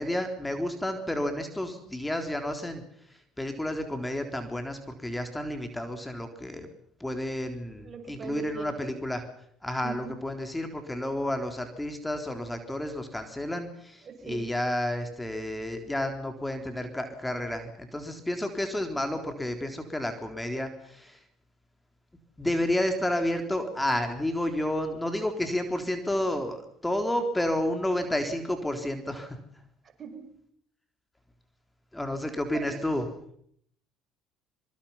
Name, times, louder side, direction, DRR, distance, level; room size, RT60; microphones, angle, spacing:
voice 1, 0.0-2.8 3.1-6.7 7.0-9.2 9.6-21.2 22.4-29.4 31.9-33.1, left 1 dB, 10° left, 6 dB, 3.7 m, -31 dB
voice 2, 7.8-8.7 9.8-10.2 14.0-14.5 30.0-30.3 32.5-32.8, right 7 dB, 45° right, 5 dB, 6.1 m, -40 dB
24.5 x 23.5 x 5.8 m, 0.65 s
hypercardioid pair, 70°, 0 cm